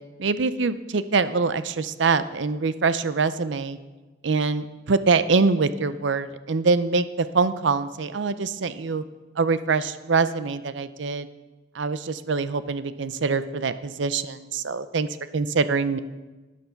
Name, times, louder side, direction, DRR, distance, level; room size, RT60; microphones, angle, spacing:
voice 1, 0.2-3.8 4.2-9.0 9.4-11.3 11.7-15.1 15.3-16.0, right 4 dB, 70° right, 13 dB, 0.6 m, -24 dB
12.0 x 9.3 x 5.9 m, 1.2 s
head